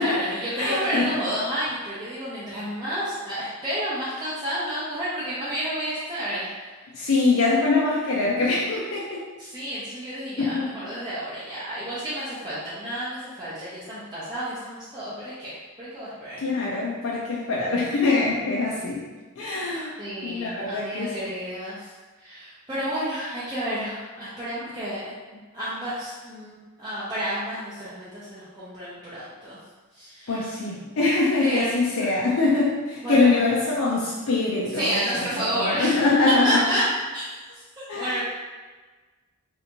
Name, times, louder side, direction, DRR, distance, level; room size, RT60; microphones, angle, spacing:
voice 1, 0.0-7.2 9.4-16.4 20.0-21.9 22.2-25.1 25.5-29.6 29.9-30.5 31.4-32.2 33.0-33.3 34.7-36.0 36.3-36.8 37.1-37.4 37.8-38.2, equal, 20° right, -12 dB, 0.6 m, -30 dB
voice 2, 0.6-1.2 6.9-9.2 10.4-10.7 16.4-19.0 19.4-19.9 20.2-21.1 30.3-35.3 35.5-36.6 37.9-38.2, left 3 dB, 65° left, -4 dB, 0.5 m, -23 dB
3.4 x 2.7 x 2.9 m, 1.3 s
head